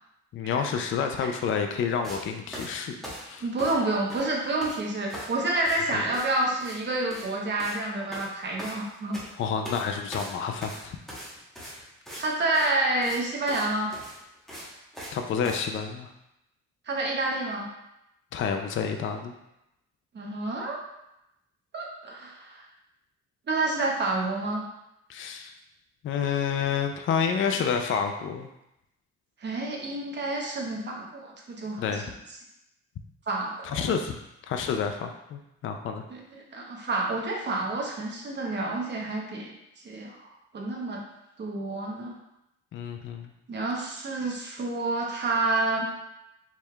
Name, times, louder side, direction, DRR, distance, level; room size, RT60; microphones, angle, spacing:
voice 1, 0.3-2.9 3.2-3.5 5.9-6.0 9.4-11.3 15.1-16.1 18.3-19.3 25.1-25.5 26.0-28.5 31.8-32.0 33.6-34.1 34.5-36.0 42.7-43.3, left 6 dB, 45° left, 5 dB, 0.4 m, -29 dB
sound 1, 2.0-2.2 2.5-3.8 4.1-4.8 5.1-5.4 5.6-5.8 6.1-6.3 6.6-6.8 7.0-7.3 7.6-7.8 8.1-9.3 9.6-9.8 10.1-12.2 12.5-12.7 13.0-13.2 13.5-13.7 13.9-15.2 15.4-15.6, equal, ahead, 1.0 m, -40 dB
voice 2, 3.4-9.2 12.2-13.9 16.9-17.7 20.1-20.8 21.7-22.6 23.5-24.6 29.4-31.9 33.3-33.8 36.1-39.5 39.8-40.2 40.5-41.0 41.4-42.1 43.5-45.9, right 2 dB, 35° right, -1 dB, 0.9 m, -29 dB
4.6 x 3.4 x 2.3 m, 0.87 s
cardioid pair, 125°, 29 cm